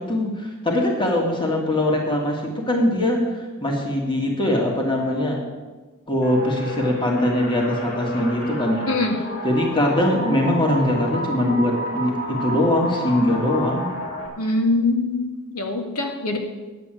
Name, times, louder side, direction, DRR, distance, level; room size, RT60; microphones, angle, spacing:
voice 1, 0.0-5.4 6.1-8.9 9.4-13.9, left 1 dB, 20° left, 0 dB, 2.2 m, -22 dB
sound 1, 6.2-14.3, equal, 50° left, 3.5 m, -31 dB
voice 2, 14.4-15.2 15.5-16.4, left 2 dB, 85° left, 3 dB, 2.0 m, -22 dB
9.7 x 7.7 x 9.1 m, 1.3 s
head